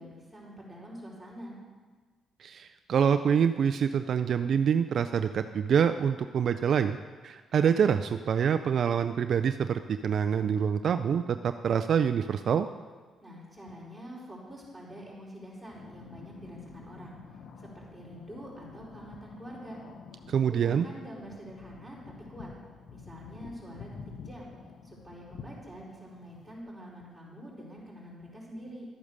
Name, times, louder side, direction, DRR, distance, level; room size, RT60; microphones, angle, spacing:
voice 1, 0.0-1.6 13.2-19.8 20.5-22.5 22.9-23.9 24.2-24.5 24.8-28.9, equal, 5° right, -5 dB, 5.0 m, -45 dB
voice 2, 2.4-7.0 7.2-12.7 20.3-20.9, right 7 dB, 60° right, 9 dB, 0.4 m, -26 dB
sound 1, 15.6-26.6, left 5 dB, 65° left, 1.1 m, -49 dB
12.5 x 8.7 x 6.5 m, 1.4 s
cardioid pair, 90°, 0 cm